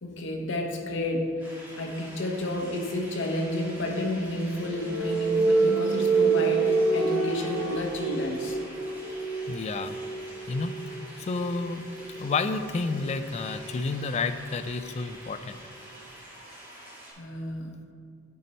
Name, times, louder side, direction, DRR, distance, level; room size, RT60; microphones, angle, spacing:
voice 1, 0.0-8.6 17.2-17.8, left 1 dB, 65° left, 2 dB, 0.9 m, -31 dB
sound 1, 1.4-17.1, equal, 10° right, 1.9 m, -46 dB
sound 2, 3.8-15.3, right 3 dB, 75° right, 0.8 m, -29 dB
voice 2, 9.5-10.0 10.5-10.7 11.2-11.9 12.1-15.6, left 4 dB, 35° left, 10 dB, 0.3 m, -30 dB
9.9 x 4.3 x 4.0 m, 2.3 s
head